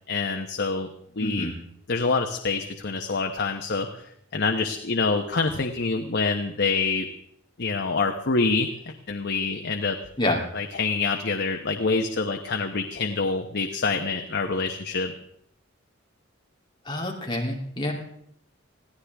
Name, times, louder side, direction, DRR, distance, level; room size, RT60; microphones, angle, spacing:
voice 1, 0.1-0.9 1.2-1.5 1.9-4.0 4.3-7.1 7.6-10.0 10.5-15.1, left 4 dB, 60° left, 4 dB, 1.1 m, -26 dB
voice 2, 1.2-1.5 10.2-10.4 16.8-17.9, left 1 dB, 25° left, 0 dB, 3.0 m, -27 dB
21.5 x 15.0 x 3.5 m, 0.70 s
head